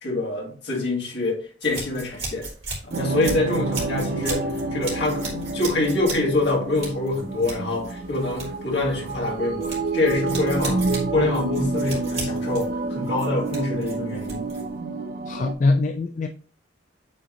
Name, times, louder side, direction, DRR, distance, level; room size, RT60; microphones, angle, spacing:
voice 1, 0.0-2.5 2.8-4.5 4.7-10.8 11.1-14.5, left 2 dB, 60° left, 2.0 m, -25 dB
sound 1, 1.6-14.8, right 3 dB, 30° right, 2.7 m, -36 dB
sound 2, 2.9-15.5, right 3 dB, 50° right, 0.6 m, -29 dB
voice 2, 15.3-16.3, left 3 dB, 40° left, 0.3 m, -22 dB
8.6 x 3.8 x 3.0 m
head